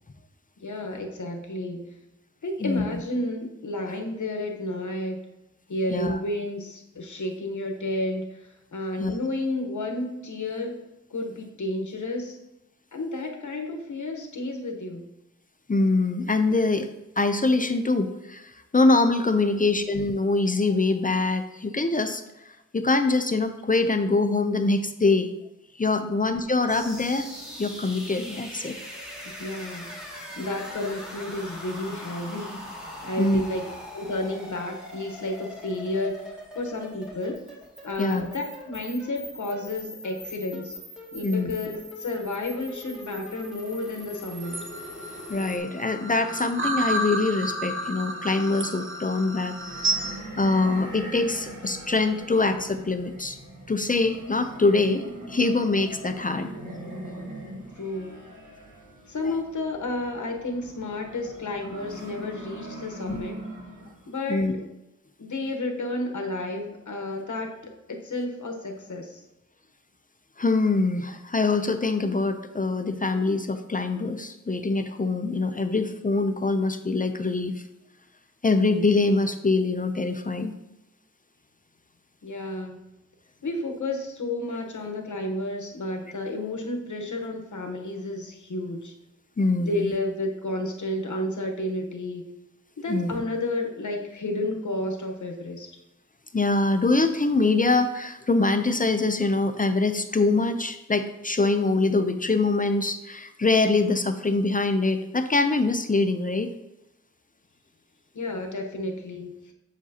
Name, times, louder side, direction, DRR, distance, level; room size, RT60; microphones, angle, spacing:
voice 1, 0.6-1.9 2.4-5.2 5.7-10.8 11.1-12.4 12.9-15.1 19.4-19.7 26.0-26.1 29.4-30.0 30.4-32.6 33.0-33.6 33.9-37.4 37.8-40.7 41.1-44.6 57.8-58.2 59.1-63.4 64.1-64.6 65.2-69.2 82.2-82.8 83.4-88.9 89.6-92.3 92.8-95.7 108.1-109.5, left 1 dB, 70° left, 2 dB, 1.1 m, -31 dB
voice 2, 2.6-3.0 5.9-6.2 9.0-9.1 15.7-16.9 17.2-22.2 22.7-25.3 25.8-27.3 27.6-28.8 33.2-33.4 38.0-38.3 41.2-41.5 45.3-49.6 49.8-50.1 50.4-53.4 53.7-56.5 63.1-63.2 64.3-64.6 70.4-77.5 78.4-80.5 89.4-89.9 92.9-93.2 96.3-106.5, left 3 dB, 25° left, 8 dB, 0.5 m, -24 dB
sound 1, 26.7-45.6, left 1 dB, ahead, 2.1 m, -41 dB
sound 2, 44.4-50.2, right 1 dB, 40° right, 0.9 m, -31 dB
sound 3, 49.5-64.1, right 1 dB, 85° right, 1.4 m, -41 dB
7.3 x 6.8 x 2.8 m, 0.92 s
wide cardioid pair, 90°, 30 cm